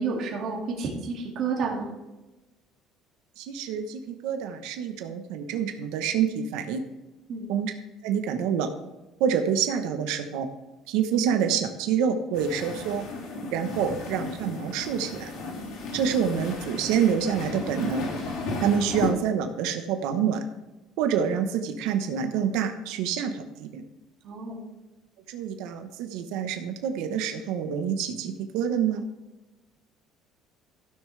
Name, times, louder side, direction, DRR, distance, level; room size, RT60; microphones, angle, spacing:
voice 1, 0.0-1.9 7.3-7.5 24.2-24.6, right 4 dB, 50° right, -2 dB, 2.3 m, -30 dB
voice 2, 3.4-6.8 7.5-7.7 8.0-8.7 9.2-10.5 10.9-13.0 13.5-15.3 15.9-18.1 18.6-20.4 21.0-23.8 25.3-29.0, right 7 dB, 80° right, 6 dB, 1.0 m, -27 dB
sound 1, 12.3-19.1, left 3 dB, 65° left, 3.2 m, -35 dB
15.5 x 6.6 x 3.3 m, 1.0 s
cardioid pair, 155°, 0 cm